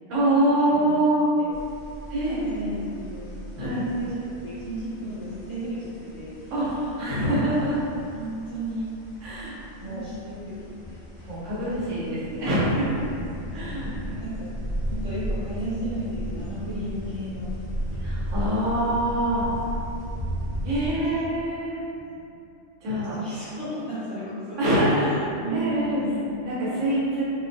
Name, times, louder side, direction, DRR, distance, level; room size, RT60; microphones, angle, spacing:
voice 1, 0.1-1.2 2.1-2.7 3.6-3.9 6.5-7.8 9.2-10.0 11.3-12.9 13.5-13.9 18.0-19.5 20.6-21.8 22.8-23.2 24.6-25.1 25.5-26.0 26.4-27.2, right 1 dB, 80° right, -9 dB, 1.1 m, -25 dB
sound 1, 1.5-20.9, equal, 50° left, 0.8 m, -35 dB
voice 2, 2.1-3.4 3.7-6.7 8.1-8.9 9.8-11.0 11.7-12.0 13.6-14.5 14.9-17.5 21.0-21.2 22.0-22.2 23.1-26.3, right 1 dB, 25° left, -14 dB, 0.8 m, -34 dB
2.6 x 2.1 x 2.6 m, 2.7 s
omnidirectional pair, 1.3 m